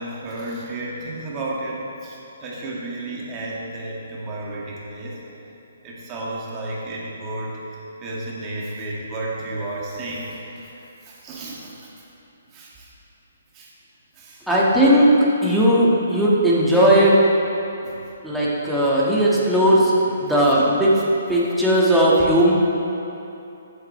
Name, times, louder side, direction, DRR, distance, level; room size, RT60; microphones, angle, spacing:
voice 1, 0.0-5.5 5.8-7.6 8.0-12.1 12.5-12.9 13.5-13.7 14.1-14.5 17.8-18.5 19.6-20.6 20.9-21.0, right 2 dB, 25° right, -5 dB, 2.1 m, -33 dB
voice 2, 14.5-17.2 18.2-19.9 20.2-20.9 21.3-22.5, equal, ahead, -8 dB, 1.8 m, -17 dB
14.5 x 7.8 x 3.3 m, 2.8 s
hypercardioid pair, 140°, 0 cm